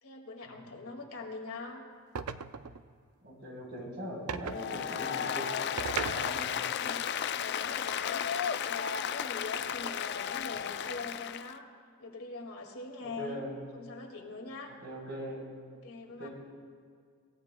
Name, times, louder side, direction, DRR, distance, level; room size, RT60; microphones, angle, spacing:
voice 1, 0.0-1.8 4.2-5.0 6.6-11.7 12.0-13.4 13.7-14.7 15.8-16.3, left 3 dB, 75° left, 2 dB, 2.0 m, -43 dB
sound 1, 2.2-2.9 4.3-4.6 5.8-6.6, right 6 dB, 85° right, 0.5 m, -37 dB
voice 2, 3.2-5.7 6.0-6.5 13.0-13.6 14.8-15.4 16.2-16.3, equal, 50° right, -2 dB, 3.9 m, -41 dB
Applause, 4.5-11.5, left 8 dB, 50° left, 0.3 m, -34 dB
26.0 x 15.5 x 2.2 m, 2.1 s
head